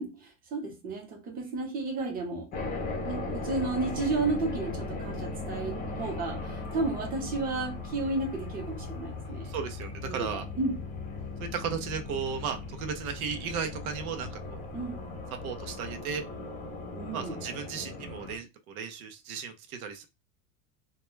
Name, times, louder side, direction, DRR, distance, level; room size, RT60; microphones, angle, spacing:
voice 1, 0.0-2.5 3.0-9.5 10.0-10.8 14.7-15.0 16.9-17.4, right 3 dB, 20° right, 0.8 m, -33 dB
sound 1, 2.5-18.4, left 3 dB, 20° left, 0.6 m, -38 dB
voice 2, 9.3-10.5 11.4-14.7 15.3-16.2 17.1-20.1, right 6 dB, 80° right, 0.7 m, -35 dB
2.2 x 2.2 x 3.0 m
supercardioid pair, 140°, 43 cm